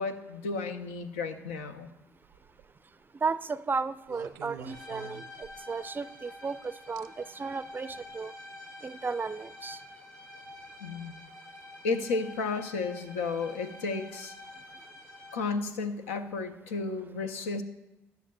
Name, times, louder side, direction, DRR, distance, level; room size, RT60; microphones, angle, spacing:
voice 1, 0.0-1.9 10.8-11.2 11.8-14.4 15.3-17.6, left 4 dB, 85° left, 7 dB, 0.5 m, -33 dB
sound 1, 2.2-2.7 4.1-5.8 7.0-7.1 7.9-8.1, right 6 dB, 80° right, 0.5 m, -47 dB
voice 2, 3.2-8.3 8.8-9.8, right 4 dB, 30° right, 16 dB, 0.4 m, -34 dB
sound 2, 4.7-15.8, left 2 dB, 45° left, 2.7 m, -48 dB
16.0 x 10.5 x 2.3 m, 0.97 s
hypercardioid pair, 50°, 7 cm